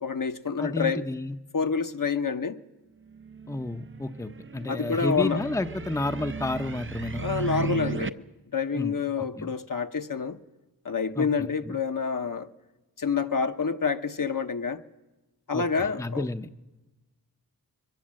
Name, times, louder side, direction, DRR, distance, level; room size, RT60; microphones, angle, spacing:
voice 1, 0.0-1.1 1.5-2.6 4.7-5.4 7.2-10.4 10.8-12.5 13.0-14.8 15.5-16.3, left 5 dB, 55° left, 1.0 m, -28 dB
voice 2, 0.6-1.3 3.5-7.2 8.7-9.5 11.2-11.8 15.5-16.6, left 2 dB, 10° left, 0.7 m, -31 dB
sound 1, 3.1-8.1, right 6 dB, 30° right, 0.6 m, -35 dB
22.5 x 18.0 x 7.6 m
wide cardioid pair, 65°, 38 cm